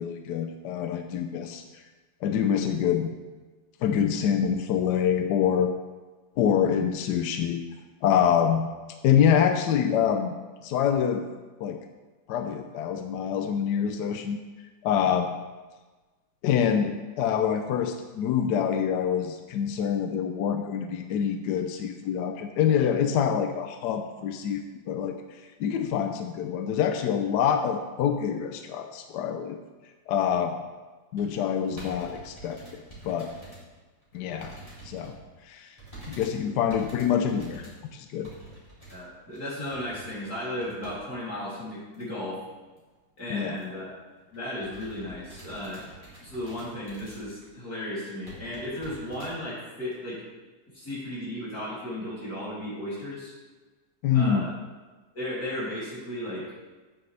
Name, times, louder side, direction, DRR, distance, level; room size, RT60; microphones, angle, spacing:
voice 1, 0.0-1.6 2.2-3.1 3.8-5.7 6.4-7.6 8.0-8.7 9.0-10.3 10.6-11.2 11.6-11.8 12.3-14.4 14.8-15.4 16.4-25.2 25.6-29.6 30.1-30.6 31.1-32.6 33.0-33.3 34.1-34.5 34.8-35.1 35.5-35.7 36.1-38.3 43.3-43.6 54.0-54.5, left 8 dB, 70° left, 6 dB, 1.0 m, -26 dB
sound 1, 31.2-33.6 34.0-35.2 35.8-41.0 41.3-41.4 41.9-42.3 42.7-42.8 43.0-43.2 43.6-43.8 44.2-47.5 47.8-47.9 48.2-49.3 49.9-50.0, right 2 dB, 15° left, 3.0 m, -47 dB
voice 2, 38.9-42.4 43.2-43.9 44.3-45.8 46.2-50.2 50.7-53.3 54.1-54.5 55.1-56.5, left 1 dB, 50° left, -9 dB, 3.6 m, -35 dB
9.4 x 9.3 x 3.3 m, 1.3 s
omnidirectional pair, 2.1 m